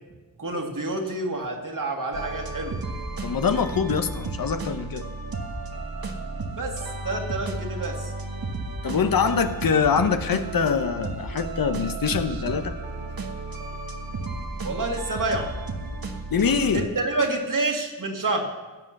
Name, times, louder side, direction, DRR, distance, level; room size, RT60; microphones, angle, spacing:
voice 1, 0.4-2.8 6.5-8.1 14.6-15.5 16.7-18.5, right 2 dB, 60° right, 2 dB, 2.2 m, -28 dB
sound 1, 2.1-16.8, right 3 dB, 80° right, 1.4 m, -33 dB
voice 2, 3.2-5.1 8.8-12.8 16.3-16.9, left 6 dB, 75° left, 9 dB, 0.9 m, -24 dB
16.5 x 7.6 x 6.5 m, 1.2 s
cardioid pair, 55°, 35 cm